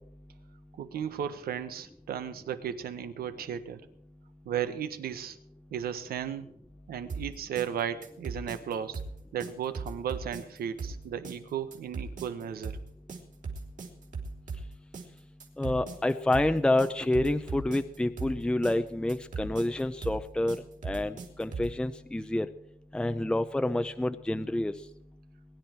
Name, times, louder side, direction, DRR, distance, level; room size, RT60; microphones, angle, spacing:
voice 1, 0.8-3.8 4.4-5.4 5.7-6.5 6.9-9.0 9.3-12.8, right 9 dB, 90° right, 10 dB, 1.4 m, -35 dB
sound 1, 7.1-21.8, right 4 dB, 55° right, 3.5 m, -39 dB
voice 2, 15.6-20.6 20.8-22.5 22.9-24.7, left 1 dB, 5° left, 9 dB, 0.6 m, -28 dB
22.0 x 10.5 x 4.6 m, 0.72 s
wide cardioid pair, 130°, 15 cm